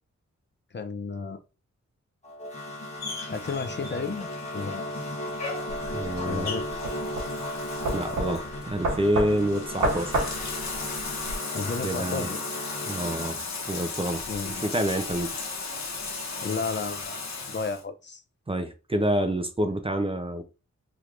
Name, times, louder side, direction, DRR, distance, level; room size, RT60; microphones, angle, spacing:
voice 1, 0.7-1.4 3.3-4.3 4.5-4.9 6.2-6.6 11.5-12.4 14.3-14.6 16.4-18.2, left 4 dB, 40° left, 0.5 m, -32 dB
sound 1, 2.2-13.3, left 1 dB, 20° left, 1.1 m, -36 dB
Bathtub (filling or washing), 3.0-17.8, left 4 dB, 65° left, 1.0 m, -36 dB
sound 2, 5.7-11.4, right 2 dB, 90° right, 1.2 m, -31 dB
voice 2, 5.9-6.6 7.9-10.1 11.8-12.3 12.9-13.4 13.7-14.2 14.6-15.4 18.5-20.4, right 1 dB, 20° right, 0.5 m, -28 dB
3.2 x 2.9 x 2.5 m
wide cardioid pair, 100°, 30 cm